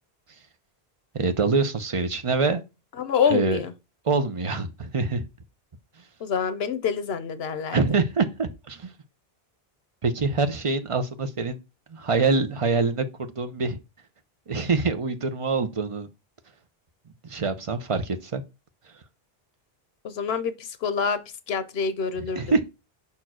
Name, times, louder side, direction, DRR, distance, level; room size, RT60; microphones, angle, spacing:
voice 1, 1.1-2.6 3.3-3.6 4.0-5.2 7.7-8.9 10.0-11.6 11.9-13.8 14.5-16.1 17.2-18.4 22.3-22.6, right 4 dB, 35° right, 0.8 m, -25 dB
voice 2, 3.0-3.7 6.2-7.8 20.0-21.2 21.5-22.5, left 6 dB, 80° left, 1.0 m, -26 dB
5.4 x 4.5 x 6.1 m
omnidirectional pair, 1.0 m